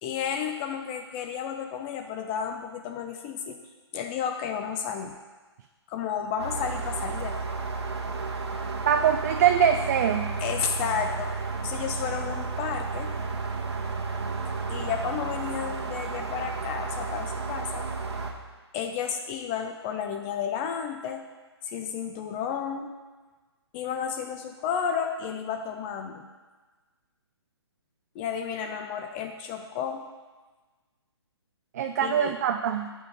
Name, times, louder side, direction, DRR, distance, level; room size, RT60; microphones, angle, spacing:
voice 1, 0.0-3.6 3.9-5.2 5.9-7.4 10.4-11.3 11.6-13.2 14.7-17.9 18.7-21.2 21.7-22.9 23.7-26.3 28.1-30.0 32.0-32.4, left 7 dB, 20° left, 5 dB, 0.5 m, -32 dB
sound 1, 6.4-18.3, right 4 dB, 70° right, 1.3 m, -32 dB
voice 2, 8.9-10.3 31.7-32.9, right 8 dB, 40° right, 6 dB, 0.4 m, -23 dB
8.1 x 6.0 x 5.2 m, 1.3 s
figure-of-eight pair, 135°, 14 cm